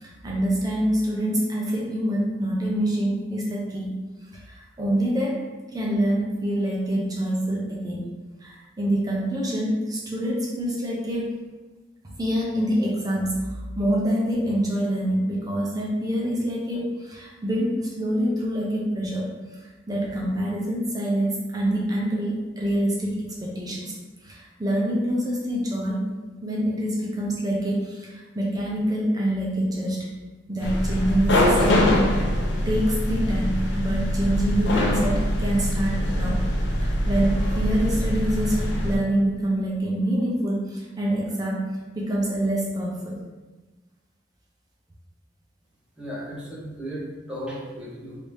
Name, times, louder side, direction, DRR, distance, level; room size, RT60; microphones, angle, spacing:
voice 1, 0.0-3.9 4.3-5.4 5.7-8.1 8.4-11.3 12.0-13.4 13.8-23.9 24.2-26.0 26.4-30.1 30.5-32.3 32.7-36.4 36.7-41.6 41.9-43.2, right 1 dB, 20° right, -4 dB, 0.5 m, -26 dB
sound 1, 30.6-39.0, left 1 dB, 75° left, 0.5 m, -23 dB
voice 2, 46.0-48.2, equal, 5° right, -7 dB, 0.9 m, -35 dB
3.3 x 2.7 x 3.1 m, 1.2 s
head